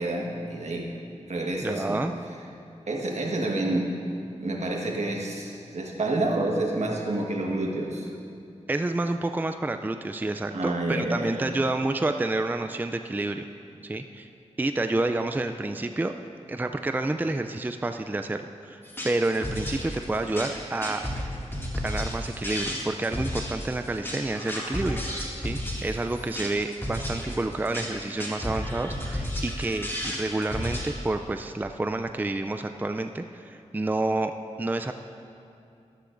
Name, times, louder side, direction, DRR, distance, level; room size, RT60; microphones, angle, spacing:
voice 1, 0.0-2.0 2.9-3.9 4.4-8.1 10.5-11.4, right 2 dB, 70° right, 0 dB, 1.4 m, -29 dB
voice 2, 1.6-2.1 8.7-13.5 13.8-14.3 14.6-16.1 16.5-21.0 21.8-34.9, right 2 dB, 15° right, 7 dB, 0.4 m, -29 dB
sound 1, 18.8-30.9, equal, 20° left, 2.2 m, -33 dB
13.0 x 13.0 x 2.6 m, 2.6 s
wide cardioid pair, 65°, 12 cm